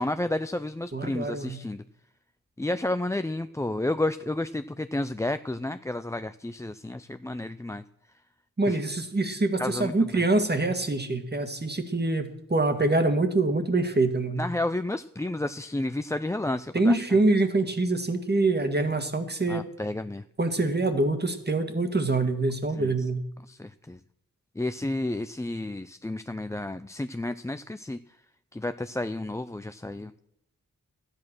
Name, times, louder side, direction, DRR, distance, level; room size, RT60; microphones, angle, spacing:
voice 1, 0.0-1.8 2.6-7.8 8.7-8.8 9.6-10.2 14.3-17.1 19.5-20.2 22.7-23.1 23.4-24.0 24.6-28.0 28.5-30.1, left 2 dB, 10° left, 11 dB, 0.5 m, -31 dB
voice 2, 0.9-1.6 8.6-14.4 16.7-19.6 20.4-23.2, right 2 dB, 30° right, 8 dB, 1.9 m, -25 dB
12.5 x 8.7 x 6.2 m, 0.78 s
cardioid pair, 45°, 33 cm